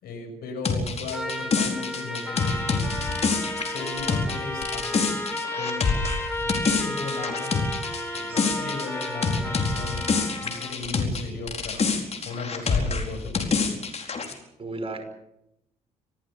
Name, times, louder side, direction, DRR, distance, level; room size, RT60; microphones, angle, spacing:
voice 1, 0.0-3.0 3.7-5.3 5.6-5.8 6.4-7.6 8.1-10.0 10.4-11.8 12.2-13.7, left 4 dB, 60° left, 5 dB, 6.4 m, -36 dB
sound 1, 0.6-11.2 11.5-14.3, left 4 dB, 35° left, 4.5 m, -26 dB
Trumpet, 1.1-10.5, equal, ahead, 3.5 m, -36 dB
Trumpet 2, 2.3-10.8, left 1 dB, 15° left, 4.7 m, -35 dB
voice 2, 8.3-8.7 14.6-15.0, right 2 dB, 30° right, 7 dB, 5.3 m, -35 dB
25.5 x 17.0 x 7.1 m, 0.82 s
figure-of-eight pair, 45°, 18 cm